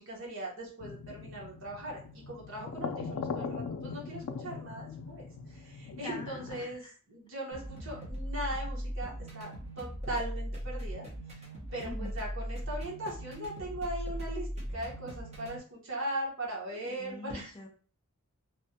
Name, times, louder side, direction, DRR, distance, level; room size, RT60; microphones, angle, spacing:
voice 1, 0.0-11.1 11.7-17.5, right 1 dB, 60° right, -3 dB, 1.1 m, -39 dB
sound 1, 0.8-6.6, left 5 dB, 90° left, 0.3 m, -40 dB
voice 2, 6.0-6.9 11.8-12.1 16.8-17.7, left 2 dB, 20° left, 2 dB, 0.4 m, -44 dB
sound 2, 7.5-15.6, equal, 30° right, 1.0 m, -39 dB
3.3 x 2.2 x 2.8 m, 0.40 s
head